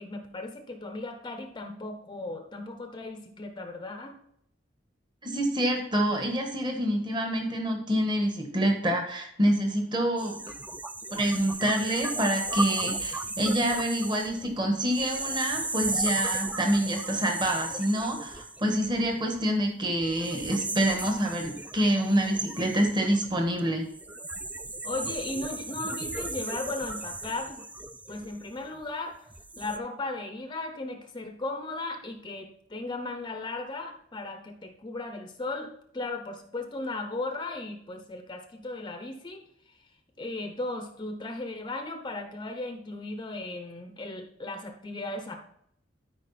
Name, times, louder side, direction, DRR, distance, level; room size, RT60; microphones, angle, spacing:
voice 1, 0.0-4.1 24.8-27.6 28.1-29.3 29.6-39.4 39.7-39.8 40.2-45.4, left 2 dB, 25° left, 5 dB, 0.8 m, -36 dB
voice 2, 5.2-10.4 11.1-23.9, right 1 dB, 25° right, 2 dB, 1.5 m, -27 dB
sound 1, 10.2-19.4 20.0-28.8 29.3-29.8, right 2 dB, 10° right, 0.4 m, -35 dB
12.5 x 5.0 x 4.2 m, 0.70 s
head